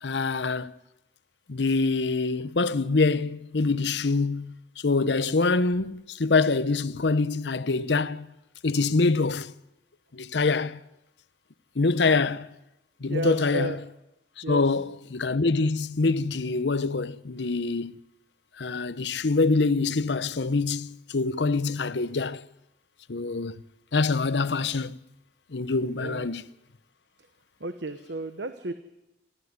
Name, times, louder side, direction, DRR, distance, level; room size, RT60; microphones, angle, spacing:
voice 1, 0.0-0.7 1.5-8.3 8.6-9.5 10.1-10.8 11.8-12.5 13.0-13.8 14.5-18.0 18.6-22.4 23.1-23.6 23.9-25.0 25.5-26.4, left 3 dB, 80° left, 0.8 m, -25 dB
voice 2, 13.1-13.8 14.4-14.6 25.9-26.3 27.6-28.7, right 2 dB, 80° right, 1.1 m, -32 dB
27.0 x 13.0 x 9.5 m
head